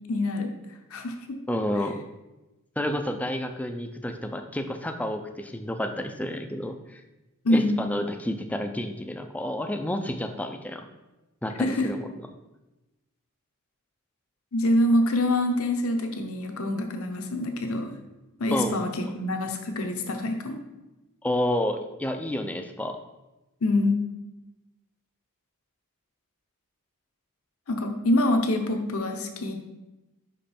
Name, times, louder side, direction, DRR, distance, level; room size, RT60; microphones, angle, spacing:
voice 1, 0.1-0.5 0.9-1.4 7.4-7.8 11.6-11.9 14.5-17.9 18.4-18.9 19.1-20.6 23.6-24.0 27.7-29.5, left 1 dB, 70° left, 5 dB, 0.8 m, -25 dB
voice 2, 1.5-2.0 2.8-7.0 7.5-10.9 11.4-12.1 18.5-18.8 21.2-23.0, left 1 dB, 5° left, 6 dB, 0.4 m, -30 dB
5.4 x 5.2 x 4.3 m, 1.0 s
head